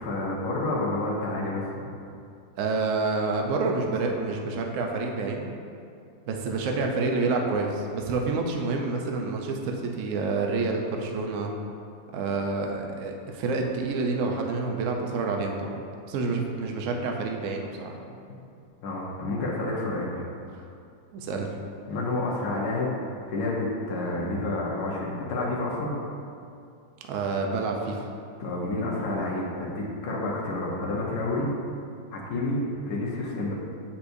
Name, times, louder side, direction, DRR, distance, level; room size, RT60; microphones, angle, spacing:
voice 1, 0.0-1.8 18.8-20.2 21.9-22.9 23.3-26.0 28.4-31.5 32.1-33.5, left 2 dB, 65° left, -4 dB, 1.4 m, -29 dB
voice 2, 2.6-5.5 6.3-11.5 12.1-15.8 16.1-18.0 20.5-20.7 21.1-21.5 27.1-28.1, right 3 dB, 65° right, 2 dB, 0.7 m, -28 dB
7.9 x 5.8 x 2.6 m, 2.5 s
omnidirectional pair, 2.0 m